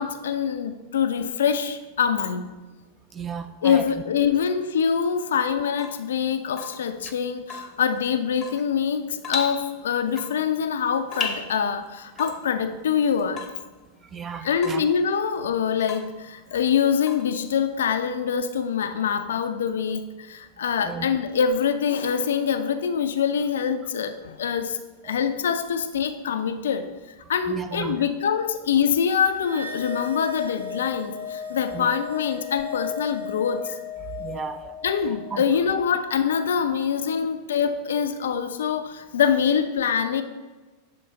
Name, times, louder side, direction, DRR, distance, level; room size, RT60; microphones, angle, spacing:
voice 1, 0.0-2.5 3.6-13.5 14.4-24.8 25.0-26.9 27.3-33.6 34.8-40.2, left 7 dB, 65° left, 9 dB, 0.4 m, -24 dB
voice 2, 3.1-3.8 14.1-14.8 20.8-21.1 25.1-25.2 27.5-28.0 31.7-31.9 34.2-34.7 35.3-35.4, right 6 dB, 20° right, 8 dB, 0.4 m, -34 dB
Water tap faucet / Drip, 5.7-17.8, left 5 dB, 25° left, 0.7 m, -38 dB
sound 1, 29.4-35.9, left 6 dB, 80° right, 0.7 m, -36 dB
6.9 x 3.7 x 3.7 m, 1.3 s
figure-of-eight pair, 90°, 0 cm